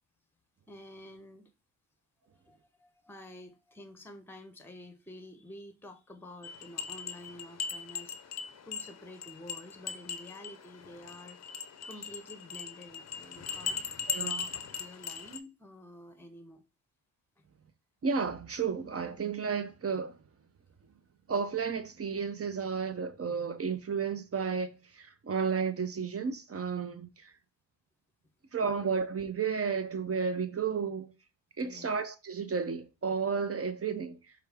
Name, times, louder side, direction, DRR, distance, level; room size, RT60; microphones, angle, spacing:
voice 1, 0.7-1.5 2.3-8.2 8.6-11.4 11.8-13.8 14.1-16.6 31.6-32.0, left 1 dB, 5° left, 0.9 m, -49 dB
sound 1, 6.4-15.4, left 6 dB, 35° left, 0.7 m, -39 dB
voice 2, 14.1-14.4 18.0-20.2 21.3-27.3 28.5-31.1 31.6-34.2, right 5 dB, 30° right, 0.7 m, -32 dB
4.8 x 2.3 x 3.4 m
supercardioid pair, 50°, 49 cm